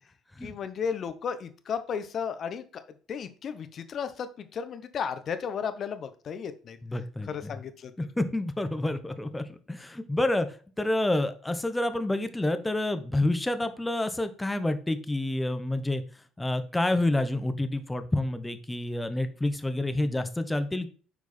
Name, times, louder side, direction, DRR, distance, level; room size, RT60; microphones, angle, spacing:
voice 1, 0.4-2.8 3.1-6.8 7.2-7.9, left 6 dB, 45° left, 10 dB, 1.0 m, -34 dB
voice 2, 6.8-7.5 8.0-10.5 10.8-16.0 16.4-20.9, left 1 dB, 10° left, 10 dB, 1.0 m, -28 dB
8.2 x 4.7 x 4.3 m, 0.41 s
hypercardioid pair, 55°, 0 cm